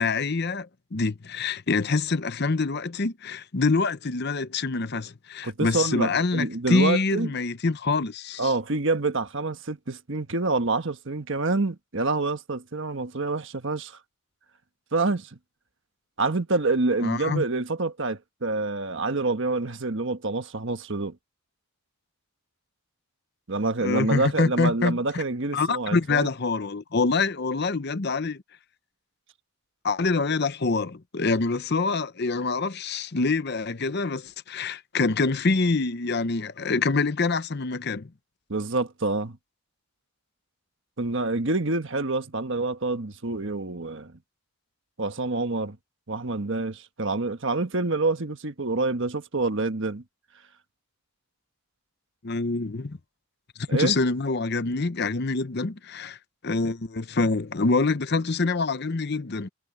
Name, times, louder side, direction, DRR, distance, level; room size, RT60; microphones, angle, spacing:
voice 1, 0.0-8.5 17.0-17.4 23.8-25.0 25.5-28.4 29.8-38.1 52.2-53.0 53.6-56.2 56.4-59.5, left 3 dB, 50° left, 0.8 m, -25 dB
voice 2, 5.4-7.3 8.4-14.0 14.9-15.4 16.2-21.2 23.5-26.3 38.5-39.4 41.0-44.1 45.0-45.8 46.1-50.0 53.7-54.0, right 3 dB, 60° right, 1.4 m, -27 dB
head